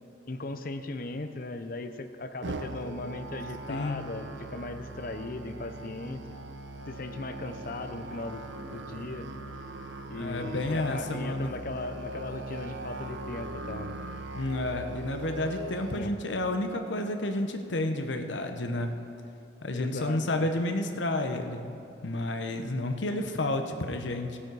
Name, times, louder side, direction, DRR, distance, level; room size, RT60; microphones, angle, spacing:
voice 1, 0.3-6.2 6.9-8.4 8.7-9.3 10.1-14.0 15.9-16.1 19.7-20.5, left 2 dB, 50° left, 9 dB, 0.7 m, -38 dB
Musical instrument, 2.4-16.0, right 2 dB, 85° right, 0.8 m, -40 dB
voice 2, 3.7-4.0 10.1-11.5 14.3-18.9 19.6-24.4, left 1 dB, 80° left, 6 dB, 1.0 m, -31 dB
17.0 x 8.7 x 4.8 m, 2.7 s
head